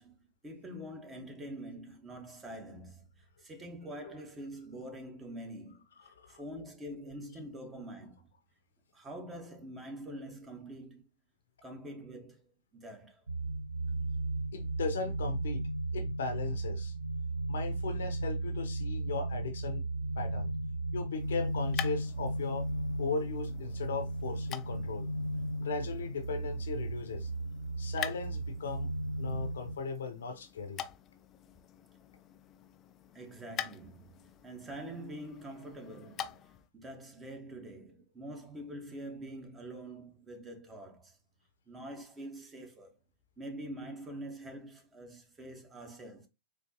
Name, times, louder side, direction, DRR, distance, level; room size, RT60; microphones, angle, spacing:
voice 1, 0.0-8.3 8.9-11.0 11.6-13.2 33.1-41.2 41.7-42.9 43.4-46.3, right 1 dB, 20° right, 1.2 m, -45 dB
sound 1, 13.3-29.8, right 2 dB, 80° right, 0.4 m, -35 dB
voice 2, 14.5-15.6 15.9-16.9 17.5-19.8 20.2-20.5 20.9-22.7 23.0-25.1 25.6-27.3 27.8-28.9 29.2-30.8, left 4 dB, 70° left, 0.7 m, -37 dB
sound 2, 21.1-36.7, left 10 dB, 30° left, 0.4 m, -46 dB
4.1 x 2.9 x 2.8 m
figure-of-eight pair, 100°, 0 cm